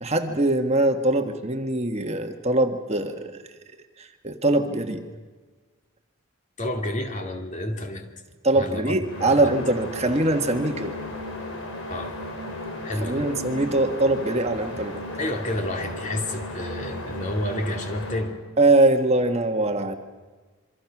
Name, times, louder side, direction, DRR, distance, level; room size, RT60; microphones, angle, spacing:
voice 1, 0.0-3.4 4.0-5.0 8.4-10.9 13.0-15.0 18.6-20.0, right 2 dB, 30° right, 5 dB, 1.5 m, -22 dB
voice 2, 6.6-8.0 8.5-9.0 9.3-9.5 11.9-12.2 12.8-13.2 15.2-18.4, left 1 dB, 35° left, 4 dB, 2.5 m, -30 dB
sound 1, 9.0-18.3, left 1 dB, 70° left, 4.4 m, -35 dB
27.5 x 24.0 x 6.0 m, 1.4 s
head